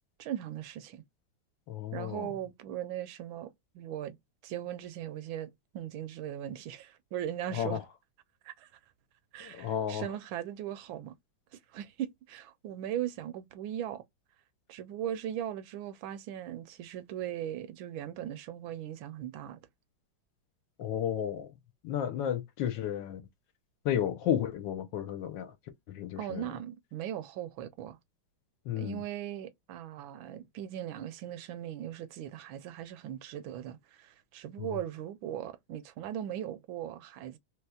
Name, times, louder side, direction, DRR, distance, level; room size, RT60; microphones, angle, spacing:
voice 1, 0.2-1.0 1.9-4.2 4.4-7.8 8.4-8.7 9.3-11.1 11.5-14.0 14.7-19.6 26.2-28.0 28.8-37.4, right 11 dB, 80° right, 1.3 m, -39 dB
voice 2, 1.7-2.3 7.5-7.8 9.4-10.1 20.8-21.5 21.8-23.2 23.8-25.5 25.9-26.5 28.6-29.0, left 10 dB, 70° left, 1.3 m, -32 dB
3.3 x 3.1 x 2.3 m
omnidirectional pair, 2.3 m